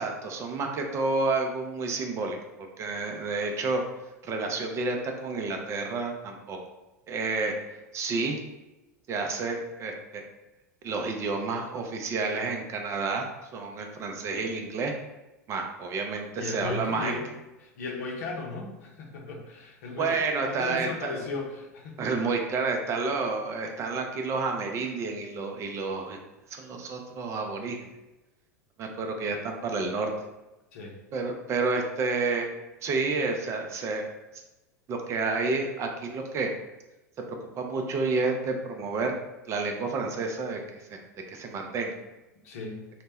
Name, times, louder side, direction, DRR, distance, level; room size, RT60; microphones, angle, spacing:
voice 1, 0.0-2.4 2.8-3.8 4.2-6.6 7.1-7.5 7.9-8.4 9.1-10.2 10.8-13.3 13.5-14.9 15.5-17.2 20.0-21.1 22.0-26.2 26.5-27.9 28.8-30.1 31.1-32.5 32.8-34.1 34.3-34.4 34.9-36.5 37.6-39.1 39.5-41.0 41.3-41.9, right 3 dB, 30° right, 3 dB, 0.4 m, -30 dB
voice 2, 16.4-17.3 17.6-20.1 20.4-22.1 30.7-31.0 42.4-42.8, left 3 dB, 60° left, 0 dB, 0.6 m, -36 dB
2.1 x 2.0 x 3.4 m, 1.0 s
figure-of-eight pair, 85°, 9 cm